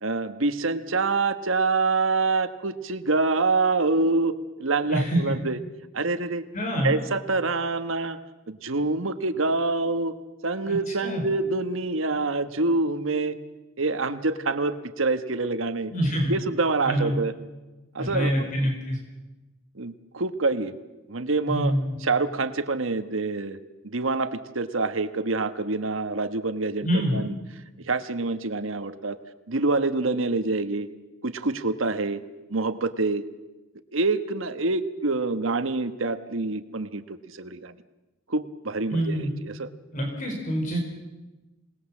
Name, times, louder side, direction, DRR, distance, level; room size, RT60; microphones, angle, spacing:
voice 1, 0.0-5.6 5.9-6.4 6.8-8.2 8.5-10.1 10.4-13.4 13.8-15.9 16.3-17.3 17.9-18.7 19.7-20.7 21.1-21.7 22.0-23.6 23.8-27.3 27.8-29.2 29.5-30.9 31.2-32.2 32.5-33.2 33.9-37.7 38.3-39.7, right 3 dB, 80° right, 10 dB, 1.3 m, -26 dB
voice 2, 4.9-5.3 6.5-6.9 10.7-10.8 11.0-11.2 15.9-16.3 16.9-17.1 18.0-19.0 21.5-21.9 26.8-27.2 38.9-39.3 39.9-40.8, equal, 40° left, 2 dB, 4.5 m, -25 dB
27.0 x 19.5 x 7.4 m, 1.1 s
head